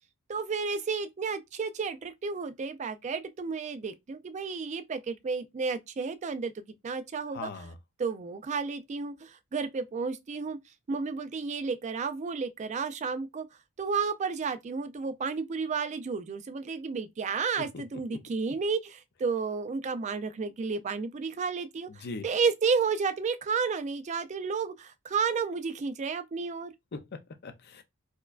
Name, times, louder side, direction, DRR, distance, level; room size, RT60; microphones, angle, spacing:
voice 1, 0.3-7.5 8.0-10.6 10.9-13.5 13.8-26.7, right 5 dB, 30° right, 0.3 m, -32 dB
voice 2, 7.3-7.8 17.6-17.8 18.1-18.2 18.5-18.6 21.9-22.2 26.9-27.8, left 3 dB, 45° left, 0.5 m, -40 dB
4.3 x 2.2 x 2.4 m
head